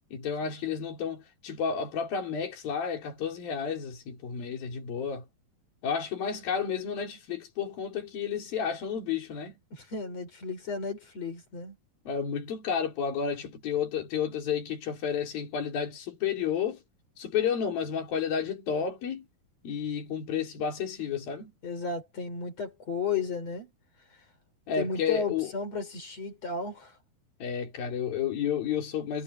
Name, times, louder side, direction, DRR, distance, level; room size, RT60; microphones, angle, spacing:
voice 1, 0.1-5.2 5.8-9.6 12.1-16.8 17.2-19.3 19.6-21.5 24.7-25.5 27.4-29.2, left 7 dB, 60° left, 6.0 m, -31 dB
voice 2, 9.7-11.8 21.6-23.7 24.8-27.0, left 5 dB, 40° left, 5.1 m, -34 dB
omnidirectional pair, 4.8 m